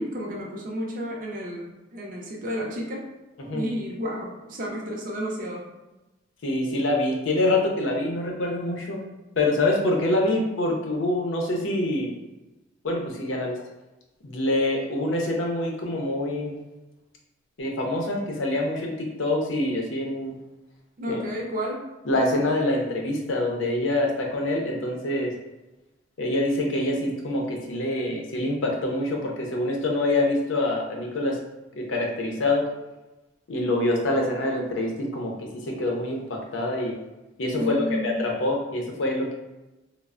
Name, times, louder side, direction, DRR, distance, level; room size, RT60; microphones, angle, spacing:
voice 1, 0.0-3.0 3.5-5.6 21.0-21.9 37.6-38.4, equal, 45° right, -2 dB, 0.5 m, -31 dB
voice 2, 6.4-9.0 9.4-12.1 12.8-13.6 14.2-16.6 17.6-20.3 21.1-21.2 22.1-25.3 26.2-31.4 31.7-32.7 33.5-36.9 37.4-39.3, left 1 dB, 90° left, 0 dB, 0.6 m, -25 dB
3.1 x 2.0 x 2.4 m, 1.0 s
head